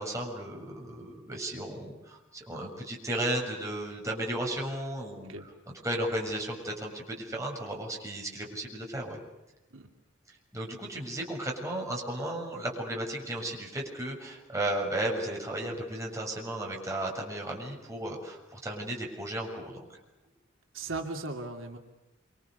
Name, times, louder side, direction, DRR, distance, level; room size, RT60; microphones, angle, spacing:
voice 1, 0.0-5.3 5.8-9.2 10.3-19.9, right 1 dB, 15° right, -1 dB, 7.1 m, -34 dB
voice 2, 20.7-21.8, right 3 dB, 80° right, 3 dB, 2.7 m, -37 dB
27.0 x 26.5 x 6.8 m, 1.0 s
head